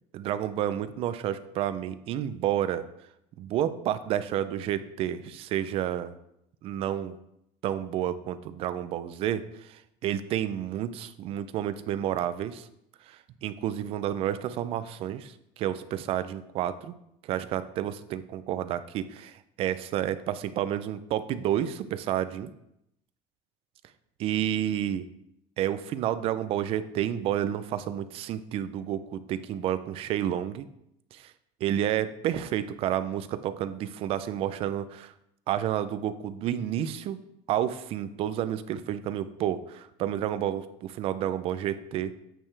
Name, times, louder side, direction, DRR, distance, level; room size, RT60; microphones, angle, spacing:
voice 1, 0.1-2.9 3.4-6.1 6.6-7.2 7.6-12.7 13.1-16.9 17.2-22.5 24.2-25.1 25.6-30.7 31.1-31.3 31.6-35.1 35.5-37.2 37.5-42.1, right 11 dB, 40° right, 12 dB, 0.4 m, -30 dB
8.9 x 6.6 x 3.3 m, 0.80 s
cardioid pair, 170°, 15 cm